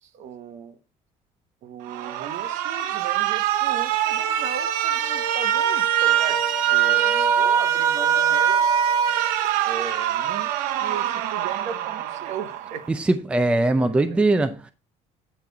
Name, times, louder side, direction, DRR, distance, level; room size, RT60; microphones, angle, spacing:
voice 1, 0.0-0.8 1.6-6.4 6.7-8.7 9.6-12.8 13.8-14.2, right 7 dB, 50° right, 1.1 m, -37 dB
Alarm, 1.9-12.9, right 10 dB, 75° right, 0.9 m, -23 dB
sound 1, 4.2-9.3, left 6 dB, 50° left, 0.8 m, -36 dB
voice 2, 12.9-14.7, right 2 dB, 10° right, 0.5 m, -21 dB
9.0 x 5.4 x 4.6 m
cardioid pair, 165°, 15 cm